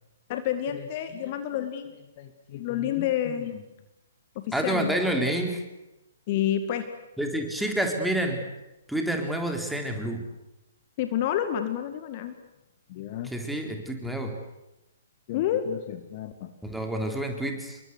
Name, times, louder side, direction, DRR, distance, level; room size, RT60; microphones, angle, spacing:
voice 1, 0.3-3.6 4.4-4.9 6.3-6.9 11.0-12.3 12.9-13.3 15.3-16.5, left 10 dB, 35° left, 8 dB, 2.0 m, -29 dB
voice 2, 4.5-5.7 7.2-8.4 8.9-10.2 13.2-14.3 16.6-17.8, right 1 dB, ahead, 2 dB, 3.9 m, -28 dB
28.5 x 23.5 x 8.1 m, 0.97 s
figure-of-eight pair, 120°, 0 cm